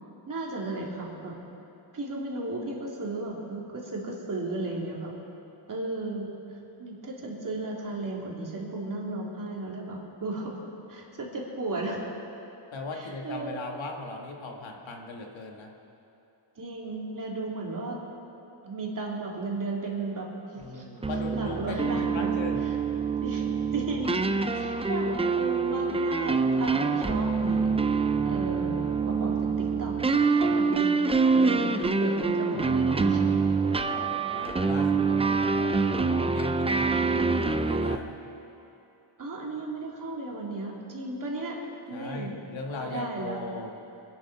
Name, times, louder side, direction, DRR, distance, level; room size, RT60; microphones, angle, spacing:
voice 1, 0.3-1.3 1.9-5.1 5.7-6.3 6.8-10.6 10.9-12.0 12.9-13.7 16.6-18.0 18.6-20.8 21.3-22.3 23.2-23.5 23.7-30.9 31.3-33.2 39.2-41.6 41.9-42.3 42.8-43.4, right 2 dB, 40° right, -2 dB, 2.9 m, -35 dB
voice 2, 12.7-15.7 20.6-22.7 33.5-38.2 41.9-43.7, left 2 dB, 70° left, 1 dB, 1.8 m, -38 dB
sound 1, 21.0-38.0, right 4 dB, 15° right, 0.4 m, -26 dB
24.0 x 11.5 x 4.7 m, 2.9 s
wide cardioid pair, 140°, 48 cm